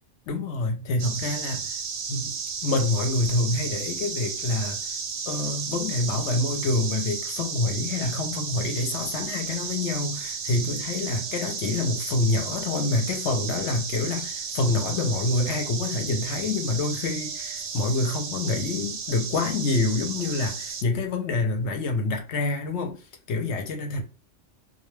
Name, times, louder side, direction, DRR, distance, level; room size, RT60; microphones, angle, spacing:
voice 1, 0.3-1.8 2.1-2.3 2.6-5.0 5.3-23.0 23.3-24.0, left 3 dB, 70° left, 0.8 m, -27 dB
sound 1, 1.0-20.8, right 6 dB, 70° right, 0.8 m, -33 dB
2.2 x 2.2 x 3.0 m
omnidirectional pair, 1.3 m